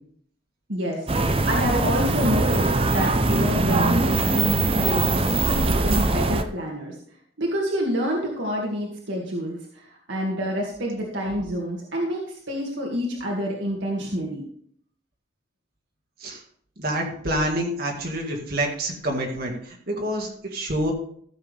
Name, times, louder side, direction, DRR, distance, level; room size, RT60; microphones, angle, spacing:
voice 1, 0.7-6.9 7.4-14.4, equal, 65° right, -2 dB, 2.2 m, -28 dB
sound 1, 1.1-6.4, right 2 dB, 30° right, 0.7 m, -22 dB
voice 2, 16.8-20.9, right 1 dB, 50° right, 0 dB, 2.0 m, -27 dB
15.0 x 7.4 x 3.5 m, 0.62 s
head